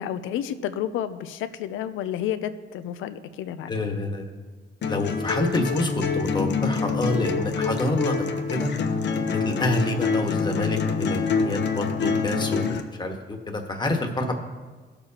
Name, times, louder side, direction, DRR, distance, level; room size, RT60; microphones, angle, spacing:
voice 1, 0.0-3.7, left 10 dB, 85° left, 12 dB, 0.6 m, -30 dB
voice 2, 3.7-4.3 4.8-8.7 9.3-14.4, left 2 dB, 20° left, 3 dB, 1.4 m, -27 dB
sound 1, 4.8-12.8, left 5 dB, 60° left, 0.8 m, -26 dB
17.0 x 6.9 x 2.9 m, 1.4 s
cardioid pair, 90°, 20 cm